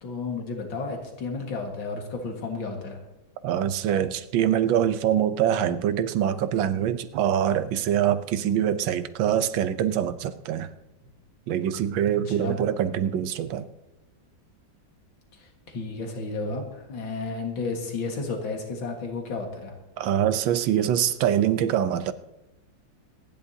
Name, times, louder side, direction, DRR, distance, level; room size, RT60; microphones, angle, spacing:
voice 1, 0.0-3.0 12.2-12.6 15.3-19.7, left 3 dB, 90° left, 2.6 m, -32 dB
voice 2, 3.4-10.7 11.5-13.7 20.0-22.1, right 10 dB, 85° right, 1.5 m, -24 dB
25.5 x 10.5 x 2.8 m
omnidirectional pair, 2.1 m